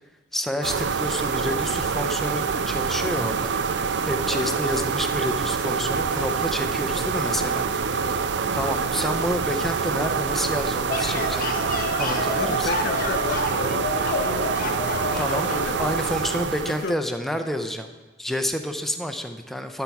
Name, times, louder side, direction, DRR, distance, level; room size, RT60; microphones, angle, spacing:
voice 1, 0.3-7.7 8.6-11.6 12.0-12.7 15.2-15.5 15.8-17.9 18.2-19.8, left 1 dB, ahead, 6 dB, 0.5 m, -29 dB
sound 1, 0.6-16.9, right 5 dB, 70° right, 0.4 m, -26 dB
voice 2, 4.3-4.6 7.8-8.8 12.3-16.3 16.6-17.1, left 4 dB, 75° left, 11 dB, 0.5 m, -35 dB
sound 2, 10.9-15.7, left 3 dB, 50° left, 1.0 m, -29 dB
12.0 x 4.7 x 5.8 m, 1.2 s
head